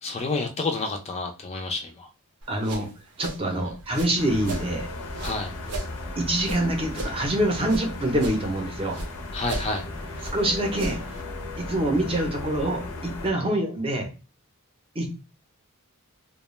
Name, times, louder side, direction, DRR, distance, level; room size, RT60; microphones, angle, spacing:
voice 1, 0.0-2.1 3.5-3.7 5.2-5.5 9.3-9.9, left 3 dB, 30° left, 3 dB, 0.4 m, -29 dB
sound 1, 2.4-4.7 5.1-7.9 8.1-9.1 9.4-11.2, right 2 dB, 85° right, 0.6 m, -36 dB
voice 2, 2.5-2.9 3.2-4.9 6.2-9.0 10.3-11.0 11.6-14.1 14.9-15.1, right 1 dB, 25° right, 2 dB, 0.6 m, -25 dB
sound 2, 4.2-13.3, left 2 dB, 75° left, 0.6 m, -36 dB
2.3 x 2.1 x 3.0 m, 0.32 s
head